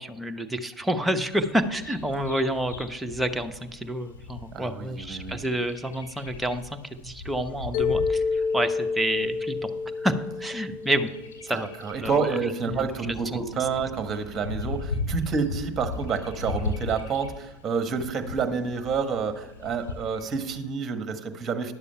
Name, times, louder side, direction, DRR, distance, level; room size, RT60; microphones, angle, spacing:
voice 1, 0.0-9.7 10.0-11.1 11.5-11.7 12.0-12.3 12.7-12.8 13.3-13.4, right 1 dB, 10° right, 6 dB, 0.9 m, -29 dB
Bird vocalization bird call bird song, 1.3-20.7, left 3 dB, 80° left, 1.9 m, -38 dB
voice 2, 4.5-5.4 11.5-21.7, right 5 dB, 30° right, 9 dB, 1.3 m, -29 dB
Mallet percussion, 7.7-11.9, left 4 dB, 65° left, 0.5 m, -29 dB
11.0 x 6.9 x 5.6 m, 1.0 s
hypercardioid pair, 80°, 0 cm